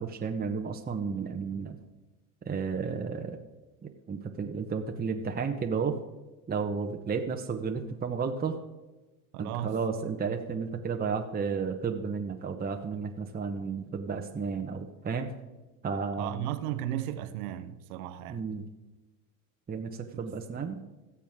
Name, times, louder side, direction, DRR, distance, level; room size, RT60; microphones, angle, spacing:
voice 1, 0.0-1.8 2.5-3.4 3.8-5.9 6.5-8.6 9.4-15.3 15.8-16.5 18.3-18.7 19.7-20.8, right 5 dB, 20° right, 1.0 m, -32 dB
voice 2, 9.3-9.7 16.2-18.4 20.6-20.7, right 12 dB, 75° right, 1.0 m, -35 dB
17.0 x 7.1 x 3.6 m
hypercardioid pair, 80°, 44 cm